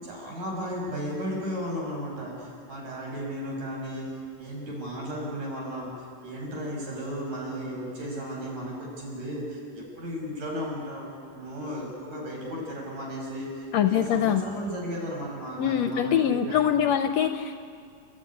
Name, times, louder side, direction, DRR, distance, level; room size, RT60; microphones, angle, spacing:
voice 1, 0.0-4.1 4.4-5.9 6.2-16.6, equal, 75° right, -2 dB, 7.7 m, -35 dB
voice 2, 13.7-14.4 15.6-17.6, left 9 dB, 75° left, 8 dB, 1.7 m, -23 dB
30.0 x 13.5 x 9.9 m, 2.3 s
omnidirectional pair, 3.6 m